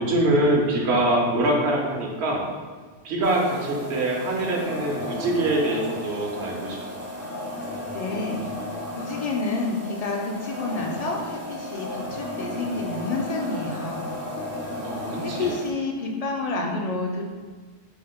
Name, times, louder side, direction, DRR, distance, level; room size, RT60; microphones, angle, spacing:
voice 1, 0.0-2.5 3.0-7.0 14.8-15.5, right 1 dB, 85° right, 0 dB, 1.1 m, -24 dB
sound 1, 3.2-15.7, left 1 dB, 25° right, 0.8 m, -34 dB
voice 2, 7.9-8.4 8.9-14.0 15.2-17.2, left 3 dB, 55° left, 0 dB, 0.4 m, -29 dB
5.5 x 3.4 x 2.2 m, 1.4 s
omnidirectional pair, 1.1 m